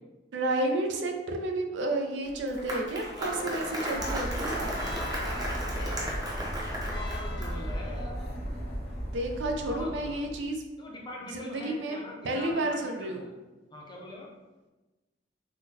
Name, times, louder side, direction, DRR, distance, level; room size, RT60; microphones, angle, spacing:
voice 1, 0.3-4.7 9.1-10.6 11.3-12.0 12.2-13.3, right 2 dB, 90° right, 3 dB, 0.4 m, -31 dB
Applause, 2.2-7.7, equal, 20° right, 0.5 m, -35 dB
voice 2, 3.2-6.2 6.6-8.1 9.6-10.2 10.8-13.3 13.7-14.3, left 1 dB, 25° left, -2 dB, 0.5 m, -43 dB
sound 1, 3.9-10.5, equal, 60° left, 0.9 m, -36 dB
3.7 x 2.2 x 2.7 m, 1.2 s
head